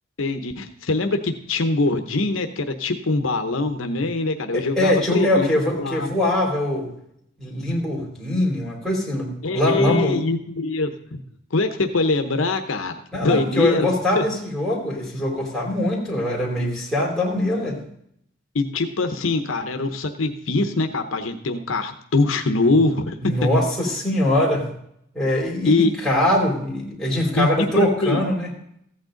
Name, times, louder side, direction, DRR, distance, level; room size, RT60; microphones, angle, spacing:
voice 1, 0.2-6.1 9.4-11.2 11.5-12.9 13.2-13.9 14.1-14.2 18.5-23.3 25.6-25.9 27.4-27.5 27.8-28.2, left 3 dB, 80° left, 6 dB, 0.9 m, -23 dB
voice 2, 4.5-6.9 7.4-10.2 13.1-17.8 23.2-24.7 25.1-28.5, left 1 dB, ahead, -5 dB, 3.2 m, -22 dB
14.5 x 8.9 x 3.9 m, 0.72 s
head